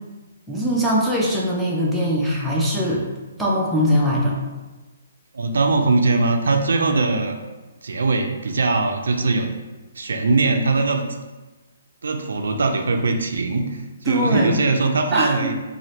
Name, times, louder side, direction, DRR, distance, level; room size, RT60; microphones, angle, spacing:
voice 1, 0.5-3.0 3.4-4.4 14.1-14.6 15.1-15.5, equal, 5° right, -5 dB, 0.4 m, -21 dB
voice 2, 5.3-7.3 7.8-9.5 10.0-11.0 12.0-15.5, right 3 dB, 85° right, 5 dB, 0.4 m, -21 dB
2.7 x 2.4 x 3.1 m, 1.2 s
hypercardioid pair, 160°, 0 cm